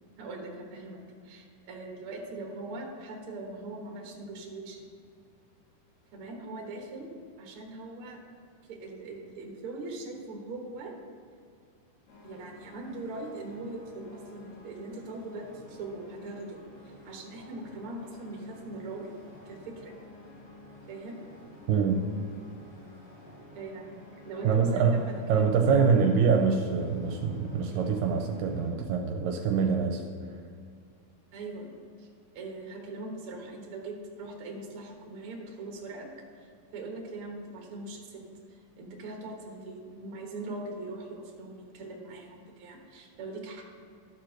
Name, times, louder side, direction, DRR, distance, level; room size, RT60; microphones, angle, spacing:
voice 1, 0.2-4.9 6.1-7.1 7.4-8.2 8.7-10.9 12.2-19.1 19.5-20.0 20.9-21.2 23.5-25.9 31.3-31.7 32.0-32.1 32.3-36.1 36.4-38.2 38.5-43.6, right 2 dB, 50° right, 0 dB, 1.7 m, -41 dB
sound 1, 12.1-28.7, left 2 dB, 85° left, 4.0 m, -51 dB
voice 2, 24.4-25.0 25.3-30.0, right 6 dB, 80° right, 4 dB, 2.2 m, -25 dB
12.5 x 4.5 x 6.3 m, 2.2 s
omnidirectional pair, 4.1 m